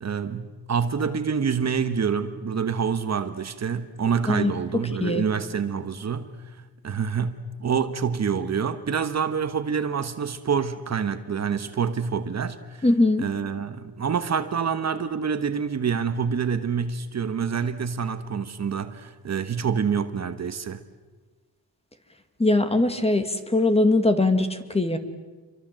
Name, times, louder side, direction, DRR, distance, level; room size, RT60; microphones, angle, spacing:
voice 1, 0.0-6.3 6.8-12.9 13.2-20.8, right 6 dB, 45° right, 1.3 m, -27 dB
voice 2, 12.8-13.3 22.4-25.0, left 2 dB, 15° left, 2.1 m, -21 dB
28.5 x 24.0 x 7.7 m
wide cardioid pair, 130°, 37 cm